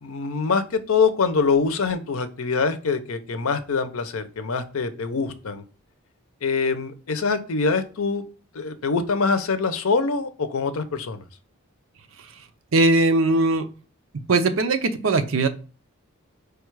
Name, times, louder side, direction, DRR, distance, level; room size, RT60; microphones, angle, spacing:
voice 1, 0.0-5.6 6.4-8.3 8.5-11.2, left 4 dB, 80° left, 10 dB, 0.6 m, -24 dB
voice 2, 12.7-13.7 14.3-15.5, right 2 dB, 65° right, 8 dB, 0.6 m, -20 dB
4.9 x 2.3 x 4.5 m, 0.36 s
head